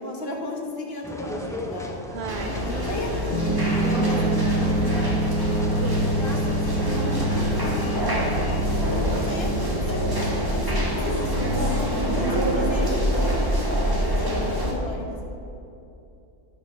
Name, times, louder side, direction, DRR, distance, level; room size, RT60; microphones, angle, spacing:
voice 1, 0.0-2.0 2.5-8.0 8.5-10.1 10.5-11.8 12.1-14.3 14.6-15.4, left 2 dB, 50° left, 0 dB, 1.7 m, -35 dB
sound 1, 1.0-11.1, left 1 dB, 5° left, 0.7 m, -37 dB
voice 2, 2.1-2.5 5.8-6.2 8.0-8.3 12.2-12.3, right 4 dB, 55° right, 3 dB, 1.1 m, -34 dB
sound 2, 2.3-14.7, equal, 15° right, 1.8 m, -26 dB
sound 3, 3.3-12.7, right 1 dB, 85° left, 1.5 m, -27 dB
11.5 x 7.3 x 6.1 m, 2.8 s
omnidirectional pair, 1.4 m